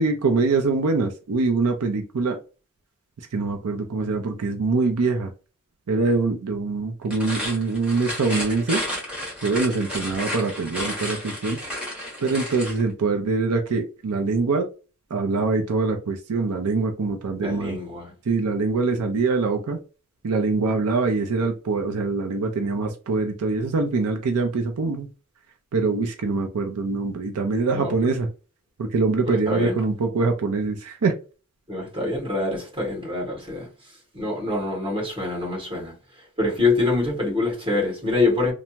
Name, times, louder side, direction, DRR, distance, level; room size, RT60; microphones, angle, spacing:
voice 1, 0.0-2.4 3.3-5.3 5.9-8.8 9.4-11.6 12.2-14.7 15.1-17.8 18.3-19.8 20.2-25.1 25.7-28.3 28.8-31.1, right 3 dB, 80° right, 0.5 m, -24 dB
sound 1, 7.0-12.8, equal, 5° right, 1.2 m, -32 dB
voice 2, 17.4-18.1 27.7-27.9 29.3-29.8 31.7-33.7 34.1-35.9 36.4-38.5, left 2 dB, 25° right, 1.6 m, -25 dB
3.3 x 2.0 x 2.8 m
head